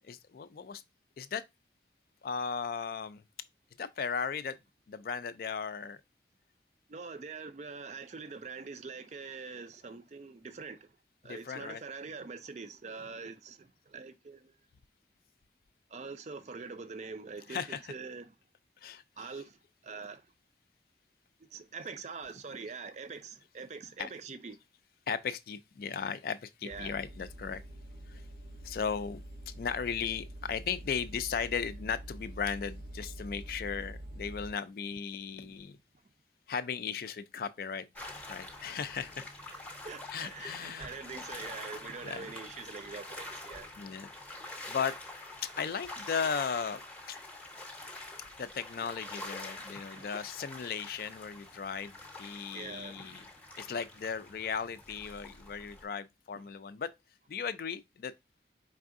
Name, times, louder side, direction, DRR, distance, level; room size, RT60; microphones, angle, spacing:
voice 1, 0.1-0.8 1.2-1.4 2.2-3.2 3.8-4.6 4.9-6.0 11.2-11.8 17.5-17.9 18.8-19.3 24.0-24.1 25.1-27.6 28.1-28.2 28.6-29.2 29.5-35.8 36.5-37.9 38.3-39.3 40.1-40.9 42.0-42.3 43.8-44.1 44.7-44.9 45.6-46.8 47.1-47.2 48.4-53.3 53.6-56.9 57.3-58.1, left 6 dB, 55° left, 0.3 m, -36 dB
voice 2, 6.9-10.9 11.2-14.5 15.9-18.3 19.2-19.6 19.8-20.2 21.5-24.6 26.6-27.0 35.4-35.5 39.8-43.7 49.7-50.1 52.5-53.2, right 4 dB, 40° right, 0.4 m, -44 dB
sound 1, 26.7-34.5, right 1 dB, 80° right, 0.9 m, -46 dB
sound 2, 38.0-55.8, left 2 dB, 10° left, 0.7 m, -46 dB
4.7 x 3.5 x 2.5 m
head